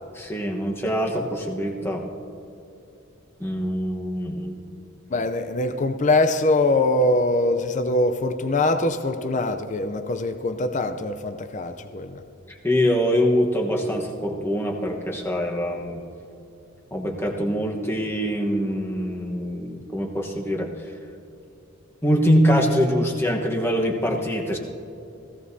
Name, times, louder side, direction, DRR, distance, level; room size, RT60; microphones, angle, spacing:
voice 1, 0.1-2.1 3.4-4.6 12.5-16.0 16.9-20.7 22.0-24.6, equal, 10° left, 0 dB, 1.1 m, -24 dB
voice 2, 5.1-12.2, left 2 dB, 35° left, 8 dB, 0.5 m, -23 dB
17.0 x 16.0 x 2.7 m, 2.8 s
head